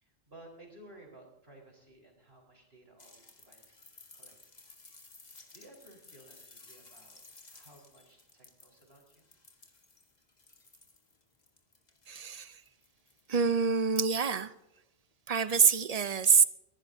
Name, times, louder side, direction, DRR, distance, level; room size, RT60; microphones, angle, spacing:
voice 1, 0.0-4.3 5.5-7.2 7.5-9.3, right 1 dB, 65° right, 4.8 m, -56 dB
sound 1, 3.0-13.4 14.8-14.9, left 3 dB, 40° left, 1.6 m, -57 dB
voice 2, 12.1-12.6 13.3-14.5 15.3-16.4, right 5 dB, 40° right, 0.7 m, -26 dB
22.5 x 19.0 x 2.8 m
omnidirectional pair, 1.1 m